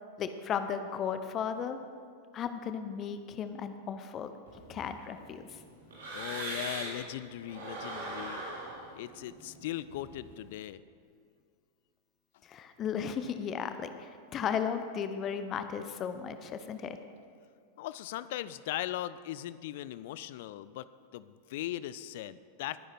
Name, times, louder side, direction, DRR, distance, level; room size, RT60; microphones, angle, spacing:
voice 1, 0.2-1.8 2.3-4.3 4.7-5.4 12.5-17.0, left 7 dB, 30° left, 10 dB, 0.8 m, -35 dB
sound 1, 4.5-7.1 7.4-10.5, right 2 dB, 60° right, 3.8 m, -41 dB
voice 2, 6.1-8.4 8.9-10.8 17.8-20.9 21.1-22.8, left 13 dB, 50° left, 16 dB, 0.4 m, -39 dB
20.5 x 10.0 x 4.3 m, 2.2 s
figure-of-eight pair, 90°, 0 cm